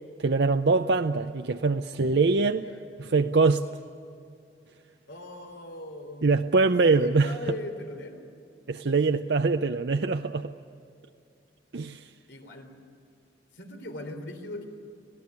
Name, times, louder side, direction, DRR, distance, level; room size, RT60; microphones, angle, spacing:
voice 1, 0.2-2.7 3.1-3.7 6.2-7.3 8.7-10.5 11.7-12.1, right 3 dB, 70° right, 7 dB, 0.6 m, -23 dB
voice 2, 5.1-6.3 6.8-8.2 12.0-12.8 13.5-14.7, left 1 dB, 85° left, 5 dB, 3.7 m, -40 dB
26.5 x 17.5 x 9.6 m, 2.4 s
head